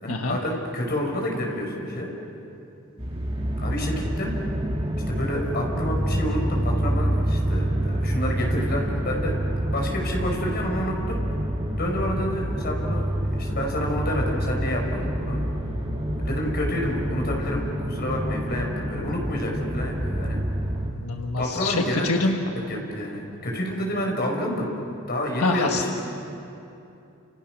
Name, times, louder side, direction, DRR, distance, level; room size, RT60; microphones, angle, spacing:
voice 1, 0.0-2.1 3.6-4.3 5.1-9.3 9.7-11.2 11.8-15.4 16.2-20.4 21.4-22.1 22.7-24.7 25.1-26.0, left 1 dB, 45° left, 0 dB, 5.8 m, -29 dB
sound 1, 3.0-20.9, equal, 25° right, 2.2 m, -27 dB
voice 2, 20.9-22.5 25.4-26.0, left 3 dB, 90° left, 2 dB, 1.5 m, -26 dB
30.0 x 29.0 x 6.4 m, 2.8 s
head